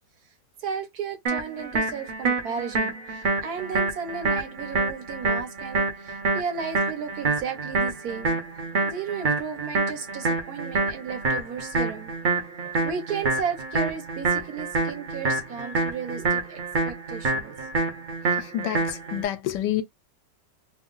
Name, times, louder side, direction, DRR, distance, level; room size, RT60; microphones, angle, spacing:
voice 1, 0.6-12.1 12.6-16.6 16.9-17.7, right 6 dB, 65° right, 1.3 m, -34 dB
sound 1, 1.3-19.2, right 3 dB, 45° right, 0.7 m, -27 dB
voice 2, 18.4-19.8, left 12 dB, 80° left, 1.2 m, -29 dB
3.1 x 2.3 x 3.7 m
omnidirectional pair, 1.9 m